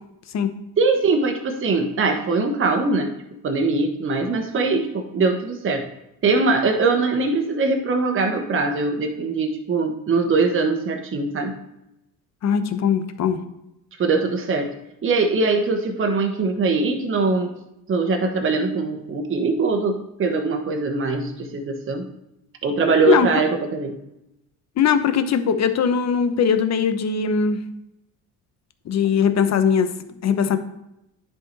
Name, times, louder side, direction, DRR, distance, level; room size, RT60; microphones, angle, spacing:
voice 1, 0.8-3.1 3.4-5.8 6.2-11.5 14.0-14.7 15.0-17.5 17.9-22.1 22.6-24.0, right 3 dB, 35° right, 4 dB, 1.2 m, -22 dB
voice 2, 12.4-13.4 23.1-23.3 24.8-27.6 28.9-29.9 30.2-30.6, left 7 dB, 45° left, 9 dB, 1.0 m, -20 dB
10.0 x 5.0 x 4.1 m, 0.87 s
cardioid pair, 120°, 37 cm